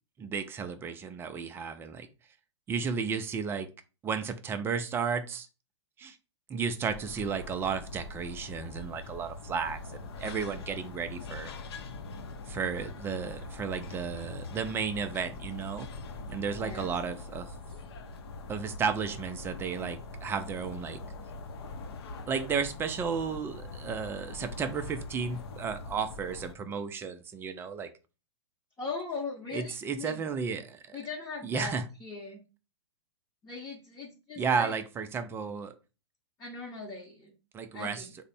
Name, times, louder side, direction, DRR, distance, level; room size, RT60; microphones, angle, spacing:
voice 1, 0.2-2.1 2.7-3.7 4.0-5.5 6.0-6.2 6.5-11.5 12.5-15.9 16.3-17.5 18.5-21.0 22.3-27.9 29.5-31.0 31.4-31.8 34.4-35.7 37.5-38.1, right 6 dB, 15° right, 9 dB, 0.4 m, -33 dB
Apartment buildings ambiance, 6.9-26.5, left 3 dB, 55° left, 0.6 m, -43 dB
voice 2, 28.8-30.2 30.9-32.4 33.4-34.7 36.4-37.3 37.7-38.1, left 4 dB, 15° left, -3 dB, 0.8 m, -39 dB
3.3 x 2.0 x 4.0 m, 0.31 s
figure-of-eight pair, 115°, 15 cm